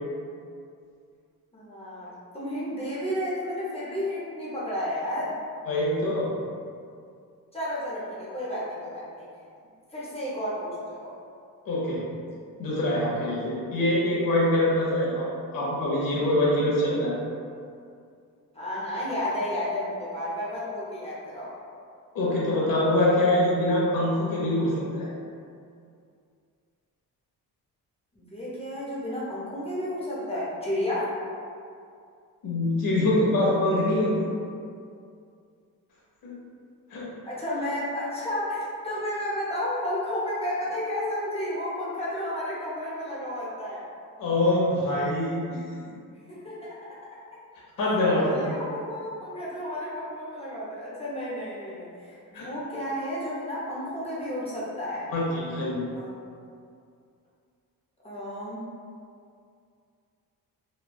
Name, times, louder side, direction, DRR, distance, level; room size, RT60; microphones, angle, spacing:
voice 1, 1.5-5.3 7.5-9.3 9.9-11.1 18.5-21.5 28.1-31.2 37.2-43.9 46.3-47.4 48.1-55.1 55.9-56.2 58.0-58.6, left 1 dB, 15° left, -8 dB, 0.5 m, -32 dB
voice 2, 5.7-6.3 11.6-12.1 12.6-15.3 15.5-17.2 22.1-25.1 32.4-34.3 36.2-36.4 36.9-37.1 44.2-45.6 47.8-48.5 52.3-52.5 55.1-55.8, left 1 dB, 65° left, -5 dB, 0.8 m, -24 dB
3.1 x 2.2 x 2.2 m, 2.4 s
wide cardioid pair, 150°, 36 cm